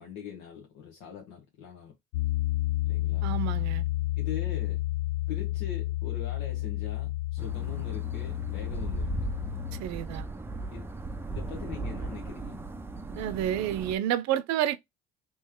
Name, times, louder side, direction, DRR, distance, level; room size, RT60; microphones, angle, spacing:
voice 1, 0.0-2.0 2.9-3.3 4.2-4.8 5.3-9.1 10.7-10.9 11.3-12.6, left 6 dB, 70° left, 1.2 m, -42 dB
Piano, 2.1-9.8, left 17 dB, 85° left, 0.7 m, -31 dB
voice 2, 3.2-3.8 9.7-10.2 13.1-14.8, right 11 dB, 70° right, 0.7 m, -29 dB
sound 1, 7.4-14.0, right 2 dB, 10° right, 0.5 m, -37 dB
3.2 x 3.1 x 3.5 m
supercardioid pair, 85°, 29 cm